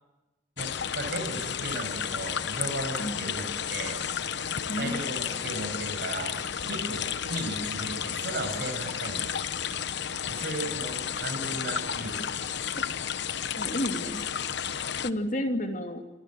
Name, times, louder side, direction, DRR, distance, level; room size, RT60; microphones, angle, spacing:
sound 1, 0.6-15.1, left 8 dB, 60° left, 1.0 m, -32 dB
voice 1, 0.6-4.0 4.8-6.4 6.6-9.4 10.3-12.2, right 2 dB, 55° right, 4 dB, 6.7 m, -36 dB
voice 2, 4.7-5.0 13.6-14.2 15.0-16.0, equal, 45° left, 4 dB, 2.8 m, -31 dB
28.0 x 27.0 x 7.6 m, 1.0 s
head